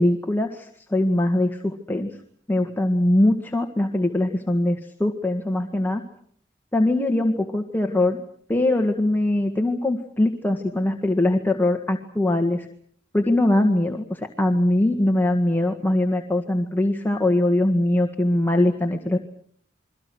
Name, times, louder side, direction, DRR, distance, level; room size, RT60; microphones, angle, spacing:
voice 1, 0.0-2.1 2.5-6.0 6.7-8.2 8.5-12.7 13.1-19.2, left 1 dB, 10° left, 3 dB, 1.8 m, -22 dB
29.0 x 23.5 x 6.3 m, 0.64 s
head